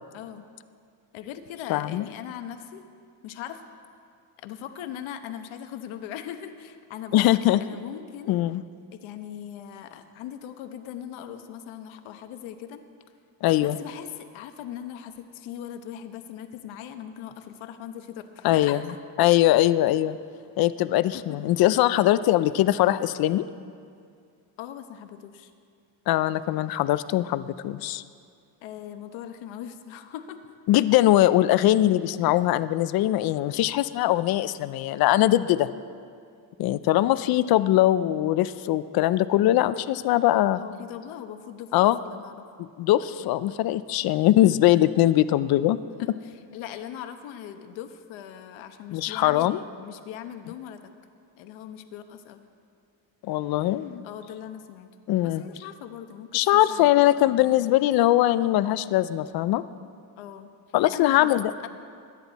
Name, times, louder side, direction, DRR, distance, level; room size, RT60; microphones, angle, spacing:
voice 1, 1.1-2.8 3.2-3.6 4.4-7.2 7.6-8.4 9.0-12.8 13.6-18.8 21.1-21.2 22.0-22.5 24.6-25.5 28.6-30.4 40.5-42.4 46.0-50.9 51.4-52.4 54.0-54.9 55.2-57.4 60.2-60.5 60.8-61.7, left 10 dB, 70° left, 8 dB, 1.1 m, -40 dB
voice 2, 1.7-2.1 7.1-7.6 8.3-8.6 13.4-13.8 18.4-18.8 19.2-20.2 20.6-23.4 26.1-28.0 30.7-35.7 36.6-40.6 41.7-42.0 42.8-45.8 48.9-49.6 53.2-54.0 55.1-55.4 56.3-59.6 60.7-61.5, left 14 dB, 50° left, 15 dB, 0.5 m, -21 dB
22.0 x 10.0 x 4.1 m, 2.3 s
cardioid pair, 160°, 48 cm